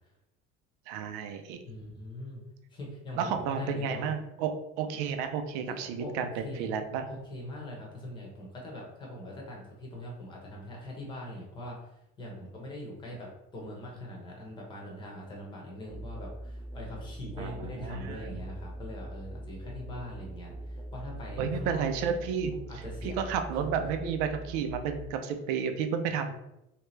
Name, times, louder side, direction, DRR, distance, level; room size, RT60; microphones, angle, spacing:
voice 1, 0.9-1.6 3.2-7.1 17.4-18.4 21.4-26.3, right 6 dB, 85° right, 7 dB, 0.5 m, -32 dB
voice 2, 1.7-2.4 2.7-4.1 5.7-6.7 7.1-21.9 22.7-23.3, left 1 dB, 25° left, -1 dB, 0.9 m, -42 dB
Musical instrument, 15.9-25.1, right 1 dB, 5° left, 0.4 m, -42 dB
3.2 x 2.8 x 3.2 m, 0.86 s
cardioid pair, 165°, 20 cm